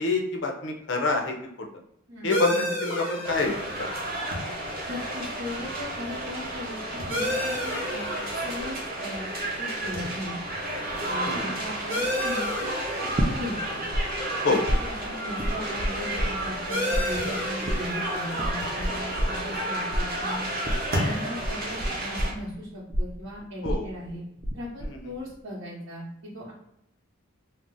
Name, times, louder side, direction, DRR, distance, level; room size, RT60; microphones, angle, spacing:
voice 1, 0.0-1.3 2.2-3.9 11.3-11.5 14.4-14.6 23.6-23.9, left 3 dB, 55° left, 2 dB, 0.5 m, -26 dB
voice 2, 2.1-2.6 4.8-6.8 7.1-10.3 11.1-12.8 13.3-13.8 14.4-20.5 21.0-24.2 24.5-26.5, left 1 dB, 80° right, -9 dB, 0.9 m, -38 dB
sound 1, 2.3-21.4, left 1 dB, 10° right, 0.8 m, -35 dB
sound 2, 3.2-22.3, right 1 dB, 45° right, 0.7 m, -32 dB
sound 3, 13.2-14.0 14.3-16.6 16.9-24.5 24.8-25.3, equal, 25° right, 0.3 m, -28 dB
2.5 x 2.0 x 3.7 m, 0.79 s
head